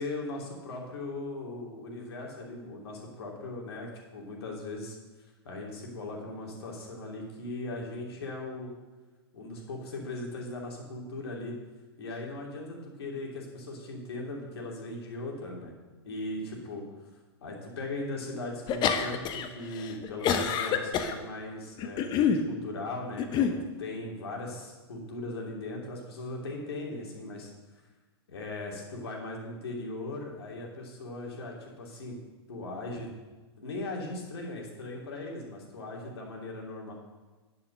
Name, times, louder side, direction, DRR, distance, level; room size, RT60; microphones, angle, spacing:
voice 1, 0.0-5.0 5.4-8.7 9.3-11.6 12.0-15.7 16.0-16.8 17.4-23.5 23.8-27.5 28.3-32.2 32.5-33.1 33.6-36.9, left 2 dB, 65° left, -1 dB, 2.8 m, -38 dB
sound 1, 18.7-19.5 19.8-21.1 21.8-22.4 23.2-23.6, left 7 dB, 30° left, 0.9 m, -26 dB
10.0 x 5.8 x 6.5 m, 1.3 s
figure-of-eight pair, 105°, 14 cm